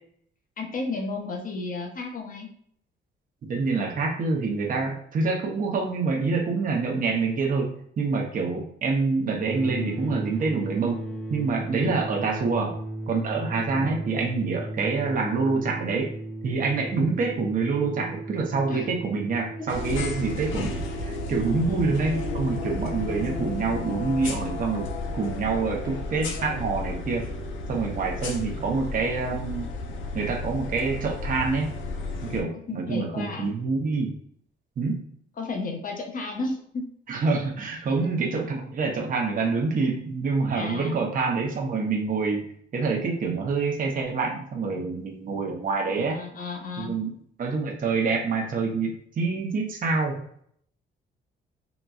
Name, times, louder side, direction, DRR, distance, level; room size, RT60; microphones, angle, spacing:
voice 1, 0.6-2.5 11.8-12.1 13.5-14.0 18.7-18.9 19.6-19.7 21.3-21.9 32.2-33.5 35.4-36.8 40.5-40.9 45.9-47.0, left 3 dB, 45° left, 1 dB, 0.8 m, -33 dB
voice 2, 3.5-11.0 11.3-12.7 13.1-16.1 16.4-27.3 27.7-29.7 30.1-31.7 32.2-34.1 34.8-35.1 37.1-42.5 42.7-46.2 46.8-47.1 47.4-50.2, right 4 dB, 45° right, 0 dB, 0.7 m, -26 dB
sound 1, 9.4-23.5, right 1 dB, 5° left, 0.5 m, -36 dB
sound 2, 19.7-32.4, left 2 dB, 75° left, 0.6 m, -33 dB
3.9 x 2.2 x 2.3 m, 0.65 s
cardioid pair, 90°, 20 cm